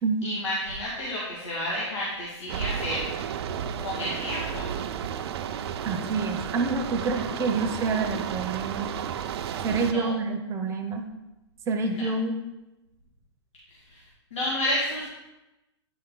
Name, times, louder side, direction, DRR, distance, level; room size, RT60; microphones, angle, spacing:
voice 1, 0.2-3.1 3.8-4.7 9.9-10.1 11.9-12.1 13.9-14.0 14.3-15.0, left 1 dB, 85° left, -6 dB, 2.1 m, -30 dB
sound 1, 2.5-9.9, right 8 dB, 65° right, 0.5 m, -32 dB
voice 2, 5.8-8.9 9.6-11.1 11.7-12.4, right 4 dB, 20° right, 5 dB, 0.8 m, -27 dB
9.4 x 4.5 x 3.8 m, 0.98 s
hypercardioid pair, 140°, 15 cm